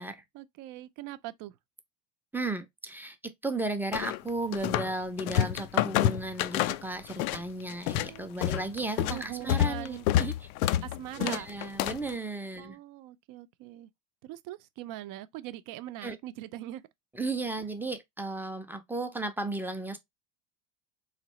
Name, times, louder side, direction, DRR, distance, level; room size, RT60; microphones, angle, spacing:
voice 1, 0.3-1.6 7.9-8.3 9.1-10.1 10.8-11.5 12.6-13.9 14.2-16.8, right 14 dB, 50° right, 0.6 m, -42 dB
voice 2, 2.3-3.2 3.4-10.3 11.2-12.8 16.0-16.2 17.1-20.0, right 2 dB, 5° right, 0.6 m, -34 dB
sound 1, 3.9-4.9 5.2-7.4 7.7-12.1, left 12 dB, 90° left, 0.5 m, -28 dB
3.9 x 3.3 x 3.0 m
supercardioid pair, 120°, 41 cm